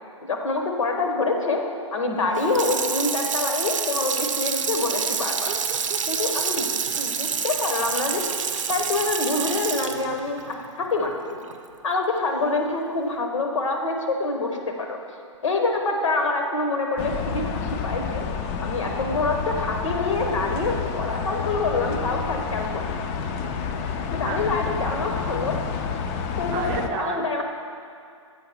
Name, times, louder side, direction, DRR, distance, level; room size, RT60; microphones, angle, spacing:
voice 1, 0.2-1.6 1.9-5.5 6.1-6.7 7.0-8.2 8.7-10.6 10.9-11.4 11.8-14.5 14.8-15.0 15.4-18.3 18.6-22.9 24.1-25.6 26.4-27.4, left 3 dB, 80° left, 3 dB, 1.0 m, -26 dB
Water tap faucet / Sink (filling or washing), 2.3-11.6 12.0-12.1, right 6 dB, 85° right, 0.6 m, -28 dB
voice 2, 5.5-6.2 24.0-24.5 26.5-27.4, right 7 dB, 35° right, 4 dB, 0.6 m, -34 dB
sound 1, 17.0-26.9, left 6 dB, 30° left, 0.4 m, -29 dB
7.7 x 4.7 x 4.3 m, 2.4 s
hypercardioid pair, 130°, 16 cm